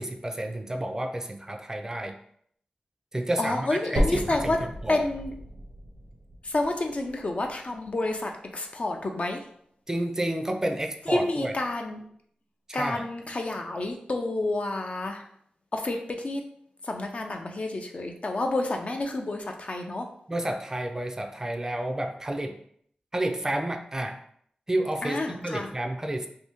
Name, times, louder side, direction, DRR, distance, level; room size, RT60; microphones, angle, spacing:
voice 1, 0.0-2.1 3.1-5.0 9.9-11.5 12.7-13.0 20.3-22.6 23.1-24.2 24.7-26.3, right 1 dB, 20° right, 4 dB, 0.4 m, -30 dB
voice 2, 3.4-4.6 4.9-5.3 6.4-9.4 11.1-12.0 12.7-15.2 15.7-16.4 16.8-20.1 25.0-25.7, left 2 dB, 45° left, 3 dB, 0.4 m, -29 dB
sound 1, 4.0-8.0 8.5-8.6 9.2-9.3 9.6-9.7 10.5-10.6, equal, 75° right, 0.7 m, -33 dB
2.7 x 2.6 x 3.4 m, 0.65 s
wide cardioid pair, 85°, 3 cm